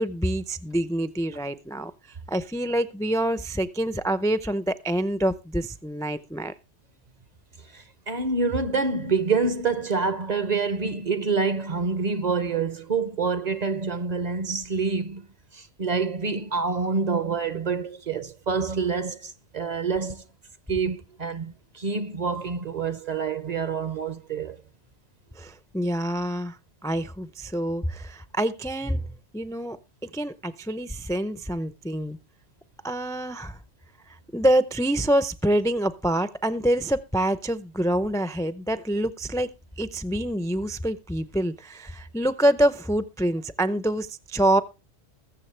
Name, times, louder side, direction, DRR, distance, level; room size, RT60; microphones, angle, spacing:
voice 1, 0.0-1.9 2.3-6.5 25.4-26.6 26.8-29.1 29.3-32.2 32.8-33.6 34.1-39.5 39.8-44.6, right 1 dB, 5° left, 0.3 m, -26 dB
voice 2, 7.6-15.3 15.5-20.2 20.7-24.6, right 4 dB, 45° right, 0.7 m, -27 dB
20.5 x 7.1 x 3.2 m
omnidirectional pair, 1.1 m